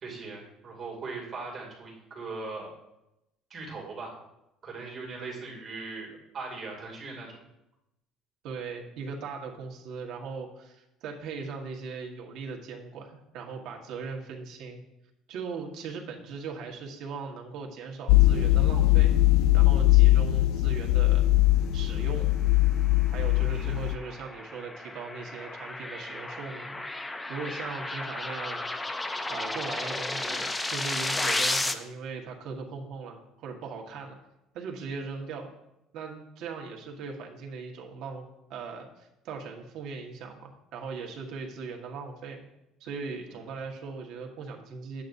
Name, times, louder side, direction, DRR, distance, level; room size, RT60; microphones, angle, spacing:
voice 1, 0.0-2.7 3.5-4.2 4.6-6.1 6.3-7.3 23.5-23.8 43.3-43.4, right 3 dB, 30° right, -2 dB, 2.5 m, -39 dB
voice 2, 8.4-14.8 15.3-19.1 19.5-21.3 21.7-22.3 23.1-26.8 27.3-28.6 29.3-34.2 34.5-35.5 35.9-38.2 38.5-42.5 42.8-45.0, right 5 dB, 60° right, 1 dB, 1.4 m, -39 dB
sound 1, 18.1-24.0, left 16 dB, 70° left, 0.3 m, -21 dB
sound 2, 22.9-31.7, left 2 dB, 10° left, 0.4 m, -33 dB
10.5 x 8.4 x 2.6 m, 0.88 s
cardioid pair, 160°, 0 cm